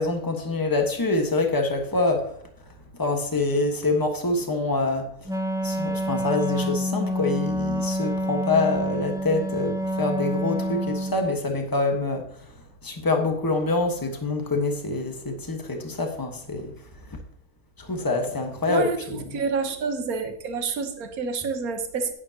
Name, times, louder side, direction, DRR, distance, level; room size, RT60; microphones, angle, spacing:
voice 1, 0.0-2.3 3.0-5.1 5.6-12.2 12.8-16.7 17.8-19.2, left 3 dB, 15° left, 3 dB, 1.3 m, -25 dB
Wind instrument woodwind instrument, 5.3-11.4, equal, 5° right, 0.5 m, -27 dB
voice 2, 18.7-22.1, right 4 dB, 75° right, 7 dB, 1.6 m, -28 dB
11.5 x 9.5 x 2.9 m, 0.69 s
omnidirectional pair, 1.5 m